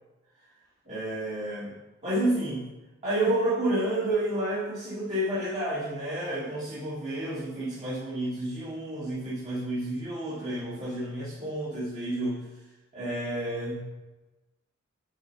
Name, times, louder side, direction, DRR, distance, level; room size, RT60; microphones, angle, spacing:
voice 1, 0.8-1.7 2.0-2.6 3.0-12.4 12.9-13.8, right 1 dB, 35° right, -12 dB, 3.0 m, -30 dB
9.7 x 5.9 x 5.0 m, 1.1 s
head